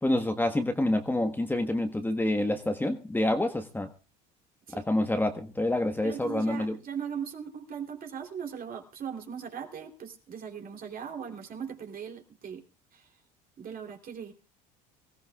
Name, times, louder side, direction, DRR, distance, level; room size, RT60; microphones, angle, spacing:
voice 1, 0.0-3.9 4.9-6.8, left 1 dB, 10° left, 6 dB, 1.4 m, -27 dB
voice 2, 6.0-12.6 12.9-13.0 13.6-14.3, right 7 dB, 45° right, 3 dB, 3.4 m, -39 dB
24.5 x 15.0 x 2.4 m, 0.33 s
supercardioid pair, 85°, 20 cm